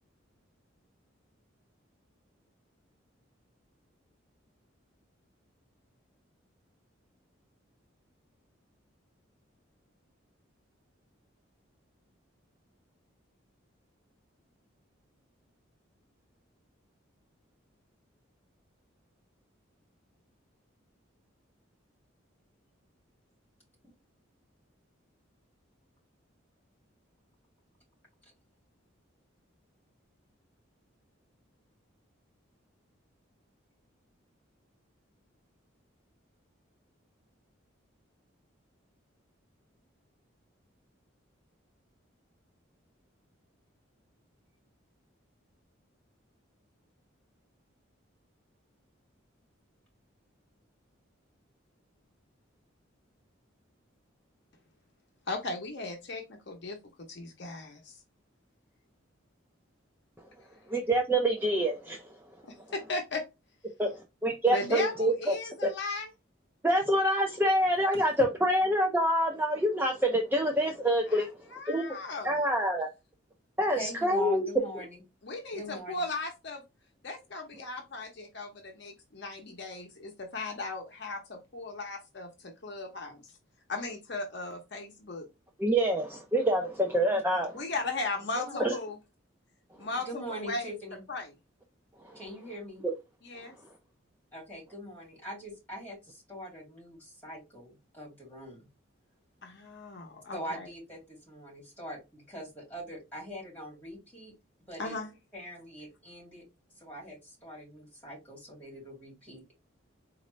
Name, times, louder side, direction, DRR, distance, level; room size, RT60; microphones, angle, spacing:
voice 1, 55.3-58.0 60.4-60.6 62.5-63.3 64.5-66.1 71.1-72.5 75.2-76.6 77.0-83.4 83.7-85.3 87.5-89.0 89.8-90.8 91.1-91.3 93.2-93.5 99.4-100.7 104.8-105.1, left 3 dB, 55° left, 0.8 m, -37 dB
voice 2, 60.7-62.0 63.8-63.9 64.2-65.3 66.6-71.3 71.7-71.9 72.2-72.9 73.6-74.5 85.6-87.6 88.6-88.7 92.8-92.9, right 1 dB, 10° right, 0.4 m, -26 dB
voice 3, 73.7-75.0 75.5-75.9 88.3-88.6 90.1-91.0 92.1-92.8 94.3-98.7 100.3-104.3 104.7-104.9 105.3-106.4 106.8-109.5, equal, 10° left, 2.5 m, -42 dB
4.1 x 2.5 x 3.0 m
head